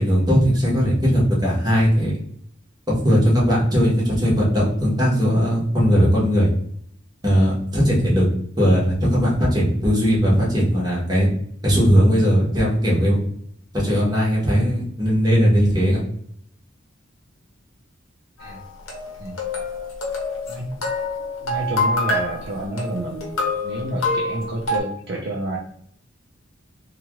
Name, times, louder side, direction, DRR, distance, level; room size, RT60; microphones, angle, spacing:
voice 1, 0.0-2.2 2.9-6.5 7.2-8.2 8.6-11.3 11.6-13.2 13.7-16.0, equal, 20° right, -5 dB, 1.0 m, -18 dB
sound 1, 18.4-24.8, left 2 dB, 85° left, 0.8 m, -26 dB
voice 2, 21.4-25.6, right 1 dB, 55° right, -1 dB, 0.4 m, -29 dB
2.8 x 2.3 x 2.9 m, 0.66 s
head